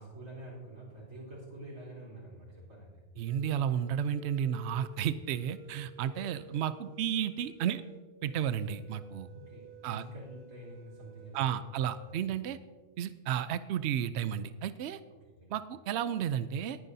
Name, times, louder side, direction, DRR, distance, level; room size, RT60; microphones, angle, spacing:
voice 1, 0.0-3.0 9.3-11.8 15.2-15.5, right 1 dB, 90° right, -4 dB, 4.5 m, -47 dB
voice 2, 3.2-7.8 8.2-9.3 9.8-10.0 11.3-12.6 13.0-15.0 15.5-16.8, right 9 dB, 65° right, 13 dB, 0.8 m, -32 dB
sound 1, 3.3-11.4 11.8-12.2, right 1 dB, 25° right, 2.7 m, -54 dB
19.0 x 9.5 x 2.7 m, 1.4 s
omnidirectional pair, 1.3 m